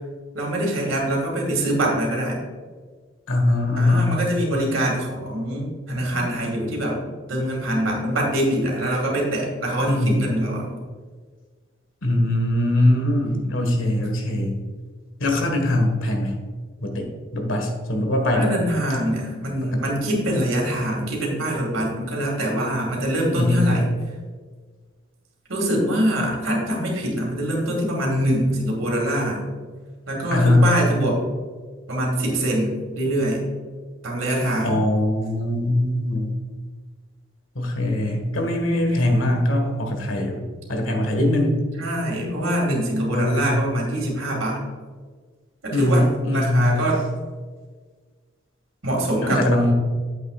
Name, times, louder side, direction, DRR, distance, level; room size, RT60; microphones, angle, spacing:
voice 1, 0.3-2.4 3.8-7.0 7.3-10.8 18.3-23.9 25.5-29.4 30.1-31.2 31.9-33.4 34.0-34.8 41.8-44.6 45.6-47.0 48.8-49.4, right 1 dB, 85° right, -1 dB, 2.4 m, -24 dB
voice 2, 3.3-4.2 9.9-10.2 12.0-14.5 15.2-16.3 16.8-17.1 17.3-18.5 19.6-19.9 23.4-23.7 30.3-30.7 34.6-36.3 37.6-40.4 40.7-41.6 43.1-43.6 45.7-46.7 49.2-49.7, left 1 dB, 85° left, 3 dB, 1.6 m, -21 dB
9.3 x 7.8 x 2.5 m, 1.5 s
head